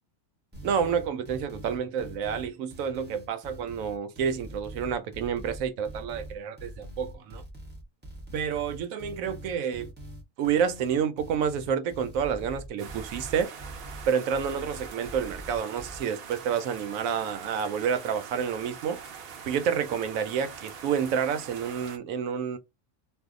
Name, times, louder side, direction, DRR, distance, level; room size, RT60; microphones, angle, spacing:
sound 1, 0.5-16.0, right 1 dB, 10° right, 0.6 m, -43 dB
voice 1, 0.6-7.4 8.3-9.9 10.4-13.5 14.1-19.0 19.5-22.6, right 7 dB, 85° right, 1.0 m, -29 dB
sound 2, 12.8-22.0, right 6 dB, 60° right, 0.7 m, -43 dB
2.7 x 2.0 x 3.6 m
omnidirectional pair, 1.4 m